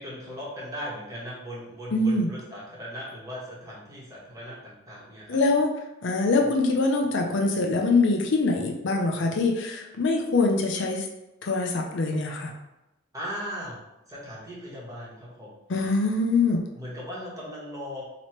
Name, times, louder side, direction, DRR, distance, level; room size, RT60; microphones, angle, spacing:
voice 1, 0.0-5.4 6.3-6.5 13.1-13.8 14.1-15.5 16.7-18.1, equal, 15° right, -6 dB, 1.2 m, -38 dB
voice 2, 1.9-2.3 5.3-5.7 6.0-11.1 11.4-12.5 15.7-16.6, left 3 dB, 60° left, 2 dB, 0.5 m, -24 dB
3.0 x 3.0 x 4.3 m, 0.94 s
head